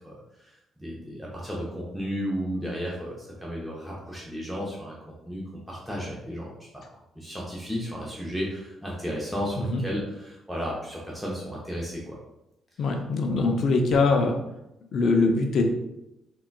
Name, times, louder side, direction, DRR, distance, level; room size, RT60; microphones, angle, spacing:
voice 1, 0.0-0.5 0.8-5.0 5.3-6.5 6.7-6.8 7.2-12.2 13.3-13.4, equal, ahead, -5 dB, 0.6 m, -33 dB
voice 2, 12.8-14.3 14.9-15.6, left 3 dB, 60° left, 4 dB, 0.5 m, -22 dB
3.6 x 2.3 x 2.2 m, 0.89 s
cardioid pair, 90°, 0 cm